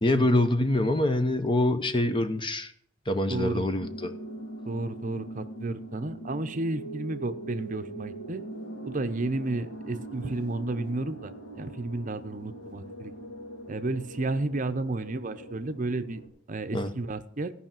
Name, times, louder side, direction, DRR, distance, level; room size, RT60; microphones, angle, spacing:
voice 1, 0.0-2.7 3.1-4.1 16.7-16.9, left 1 dB, 25° left, 9 dB, 0.9 m, -25 dB
voice 2, 3.3-3.7 4.6-8.4 8.9-13.1 13.7-16.2 16.5-17.5, right 2 dB, 40° right, 10 dB, 0.7 m, -32 dB
sound 1, 3.8-16.3, right 1 dB, 70° left, 3.2 m, -42 dB
16.5 x 5.7 x 7.4 m, 0.65 s
head